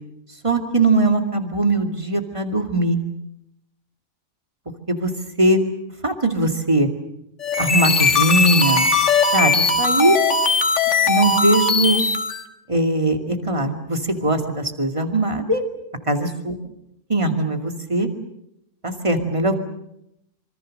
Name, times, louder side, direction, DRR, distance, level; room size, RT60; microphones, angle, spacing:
voice 1, 0.4-3.0 4.9-5.1 5.4-5.6 6.0-6.9 7.6-8.9 9.3-10.2 11.1-12.0 12.7-15.6 16.1-16.6 17.1-18.1 18.8-19.5, right 2 dB, 25° right, 5 dB, 2.4 m, -20 dB
sound 1, 7.4-12.4, left 3 dB, 70° left, 1.9 m, -19 dB
26.0 x 24.5 x 6.6 m, 0.79 s
omnidirectional pair, 1.3 m